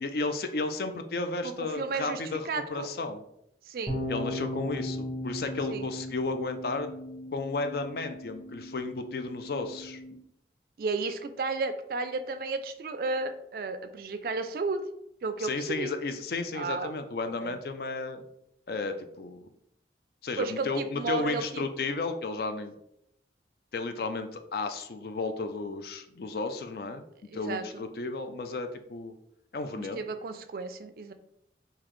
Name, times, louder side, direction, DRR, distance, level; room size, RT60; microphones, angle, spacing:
voice 1, 0.0-3.2 4.1-6.9 7.3-10.0 15.4-18.2 18.7-19.5 20.2-22.7 23.7-27.0 27.3-29.1 29.5-30.0, left 3 dB, 55° left, 8 dB, 0.4 m, -33 dB
voice 2, 1.4-2.2 2.5-2.9 3.7-4.0 5.7-5.9 10.8-14.8 15.2-15.9 16.5-16.9 17.4-17.6 20.4-21.6 27.3-27.9 29.8-31.1, right 4 dB, 55° right, 9 dB, 0.3 m, -33 dB
sound 1, 3.9-10.1, left 1 dB, ahead, 1.0 m, -37 dB
3.9 x 2.8 x 3.1 m, 0.76 s
head